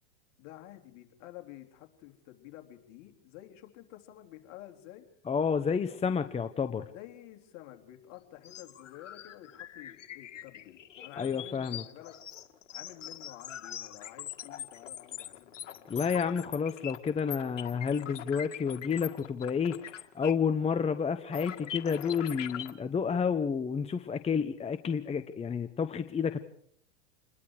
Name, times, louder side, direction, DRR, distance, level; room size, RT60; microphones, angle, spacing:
voice 1, 0.4-5.1 6.9-12.2 12.7-16.0, left 14 dB, 50° left, 4 dB, 3.6 m, -50 dB
voice 2, 5.3-6.9 11.2-11.8 15.9-26.4, left 6 dB, 15° left, 9 dB, 1.0 m, -30 dB
sound 1, 8.4-20.5 20.8-20.9 21.3-22.7, left 10 dB, 80° left, 1.9 m, -43 dB
28.0 x 21.5 x 4.9 m, 0.63 s
hypercardioid pair, 110°, 37 cm